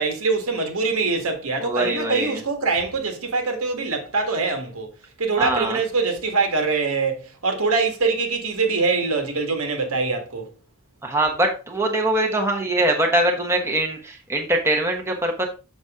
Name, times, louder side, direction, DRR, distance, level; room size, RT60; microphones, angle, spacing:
voice 1, 0.0-4.9 5.2-10.5, right 4 dB, 75° right, 1.8 m, -23 dB
voice 2, 1.6-2.4 5.4-5.8 11.0-15.5, right 1 dB, 10° right, 1.1 m, -22 dB
6.8 x 6.1 x 3.7 m
head